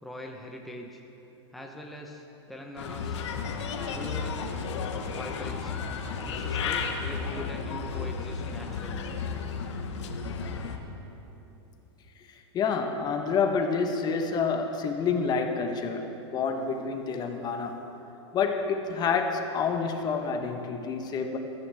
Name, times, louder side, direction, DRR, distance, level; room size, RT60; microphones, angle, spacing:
voice 1, 0.0-1.0 1.5-3.3 3.9-4.4 5.1-5.9 6.3-9.0, left 1 dB, ahead, 0 dB, 0.9 m, -42 dB
Bird, 2.8-10.8, left 5 dB, 75° left, 1.4 m, -33 dB
voice 2, 12.3-17.8 18.3-21.4, left 5 dB, 25° left, 5 dB, 1.1 m, -28 dB
16.5 x 14.5 x 3.5 m, 3.0 s
hypercardioid pair, 125°, 15 cm